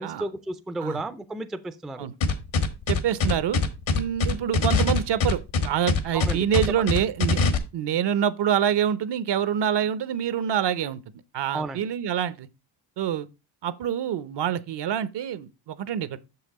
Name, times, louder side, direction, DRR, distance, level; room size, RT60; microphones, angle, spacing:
voice 1, 0.0-2.1 6.1-6.8 11.5-11.8, right 2 dB, ahead, 0.4 m, -33 dB
sound 1, 2.2-7.6, left 4 dB, 80° left, 1.4 m, -23 dB
voice 2, 2.9-3.6 3.9-7.4 7.7-11.0 11.3-12.5 13.0-13.3 13.6-16.2, right 9 dB, 60° right, 0.8 m, -26 dB
6.8 x 5.7 x 4.1 m
cardioid pair, 135°, 46 cm